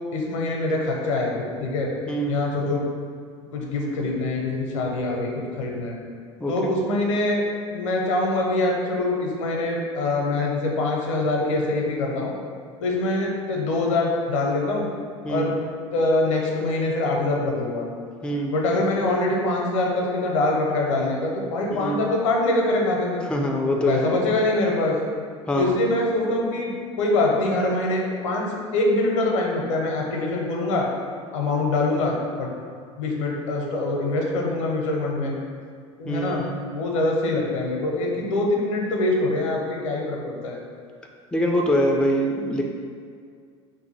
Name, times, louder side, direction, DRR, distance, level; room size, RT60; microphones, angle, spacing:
voice 1, 0.1-1.9 2.3-2.8 3.5-5.9 6.5-7.4 7.7-12.3 12.8-14.9 15.3-15.5 15.9-17.9 18.5-23.2 23.8-25.0 25.6-30.9 31.3-32.5 33.0-35.3 36.0-36.4 36.7-40.6, left 2 dB, 75° left, -1 dB, 0.6 m, -24 dB
voice 2, 2.1-2.4 6.4-6.5 15.2-15.5 18.2-18.6 21.8-22.1 23.3-24.0 25.5-25.7 36.0-36.6 41.3-42.6, equal, 5° left, 1 dB, 0.4 m, -23 dB
2.6 x 2.5 x 4.2 m, 2.1 s
hypercardioid pair, 75°, 16 cm